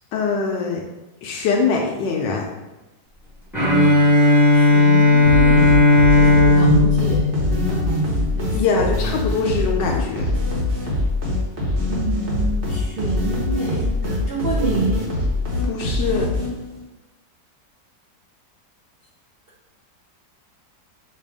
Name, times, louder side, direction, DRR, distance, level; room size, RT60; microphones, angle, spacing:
voice 1, 0.1-0.8 1.2-2.5 8.5-10.3 15.6-16.3, left 4 dB, 80° left, 0 dB, 1.2 m, -22 dB
Bowed string instrument, 3.5-8.4, left 2 dB, ahead, 1.0 m, -15 dB
voice 2, 3.7-4.1 4.5-8.9 10.8-10.9 11.9-15.0, right 3 dB, 70° right, -5 dB, 0.5 m, -26 dB
sound 1, 5.2-16.8, left 2 dB, 45° right, 1.2 m, -24 dB
5.3 x 2.5 x 3.4 m, 1.0 s
omnidirectional pair, 2.0 m